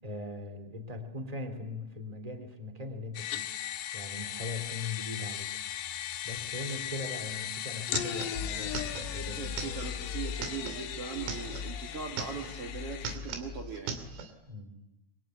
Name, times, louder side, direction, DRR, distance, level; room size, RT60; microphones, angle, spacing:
voice 1, 0.0-3.5 3.9-5.5 6.2-9.7 14.5-14.8, left 2 dB, 10° right, 7 dB, 2.3 m, -40 dB
sound 1, 3.2-13.2, left 11 dB, 70° left, 3.3 m, -38 dB
sound 2, 7.2-7.3 7.5-11.7 12.0-12.7 12.9-14.3, right 6 dB, 90° right, 5.2 m, -40 dB
sound 3, 8.3-14.2, left 6 dB, 25° left, 3.3 m, -41 dB
voice 2, 9.4-14.0, right 6 dB, 65° right, 1 dB, 1.4 m, -40 dB
27.0 x 24.0 x 9.2 m, 0.93 s
omnidirectional pair, 5.7 m